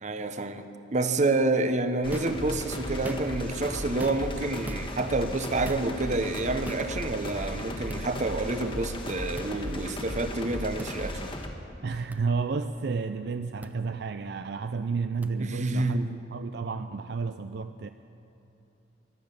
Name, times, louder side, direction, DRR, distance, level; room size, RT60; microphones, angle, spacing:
voice 1, 0.0-11.3 15.4-16.1, right 2 dB, 40° right, 10 dB, 0.9 m, -28 dB
sound 1, 2.0-11.5, left 1 dB, 30° left, 1.4 m, -36 dB
sound 2, 2.1-2.4 2.9-3.5 4.0-4.4 4.7-4.9 5.6-5.9 6.6-6.9 7.9-8.0 9.4-9.5 10.8-10.9 12.1-12.2 13.6-13.7 15.2-15.3, right 1 dB, 10° right, 0.5 m, -40 dB
voice 2, 11.8-17.9, right 4 dB, 60° right, 9 dB, 0.4 m, -31 dB
23.5 x 8.7 x 6.9 m, 3.0 s
head